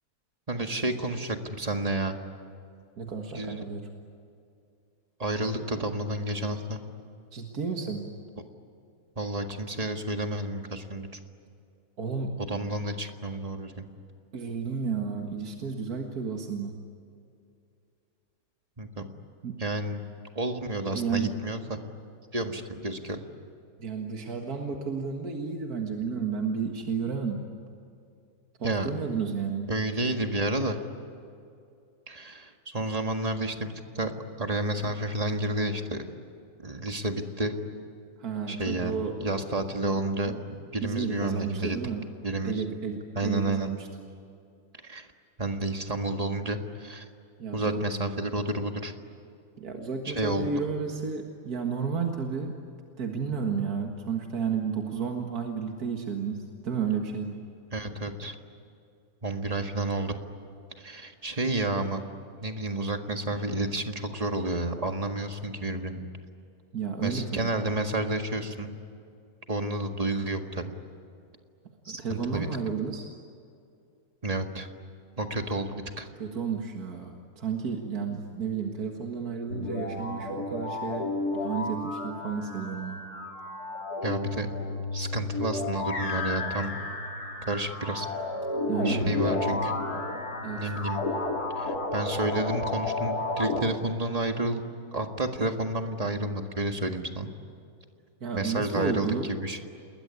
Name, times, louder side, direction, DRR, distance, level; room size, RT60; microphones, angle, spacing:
voice 1, 0.5-2.2 3.3-3.6 5.2-6.8 9.2-11.1 12.4-13.9 18.8-19.1 19.6-20.0 20.4-21.8 22.3-23.2 28.6-28.9 29.7-30.8 32.1-34.1 34.4-36.0 36.6-37.6 38.5-41.8 42.2-42.6 43.2-43.7 44.8-45.1 45.4-47.1 47.5-48.9 50.1-50.6 57.7-58.4 59.2-60.2 60.8-62.0 62.4-66.0 67.0-68.7 69.5-70.7 71.9-72.5 74.2-74.7 75.2-76.1 84.0-84.5 84.9-86.7 87.5-88.1 88.8-89.7 90.5-91.0 91.6-94.6 94.9-97.3 98.3-99.6, right 2 dB, 25° right, 5 dB, 1.8 m, -30 dB
voice 2, 3.0-4.0 7.3-8.2 12.0-12.4 14.3-16.8 19.4-19.5 20.9-21.4 23.8-27.5 28.6-29.7 38.2-39.2 40.2-40.4 40.8-42.0 42.4-43.9 47.4-47.9 49.6-52.5 53.0-57.4 66.7-67.5 71.9-73.1 76.2-83.1 88.7-89.1 90.4-90.9 98.2-99.3, right 6 dB, 75° right, 2 dB, 2.3 m, -32 dB
sound 1, 79.5-93.6, left 2 dB, 80° left, 3.4 m, -32 dB
29.0 x 21.0 x 9.7 m, 2.5 s
omnidirectional pair, 1.6 m